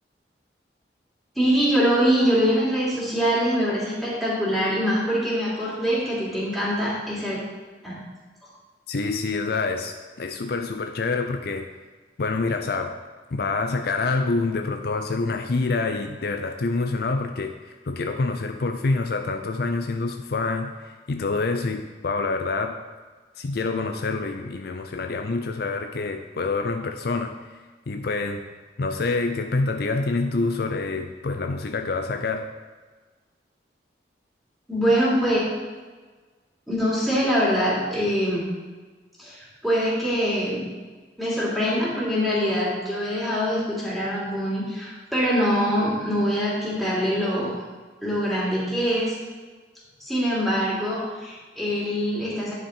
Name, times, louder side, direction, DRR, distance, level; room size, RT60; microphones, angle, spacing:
voice 1, 1.3-7.4 7.8-8.0 34.7-35.4 36.7-38.4 39.2-40.6 41.2-47.5 48.0-49.1 50.0-52.5, equal, ahead, -8 dB, 3.0 m, -24 dB
voice 2, 8.9-11.7 12.2-13.0 13.3-22.8 23.4-27.6 27.9-28.4 28.8-32.5, left 3 dB, 60° left, 5 dB, 0.5 m, -27 dB
9.9 x 5.9 x 4.4 m, 1.4 s
head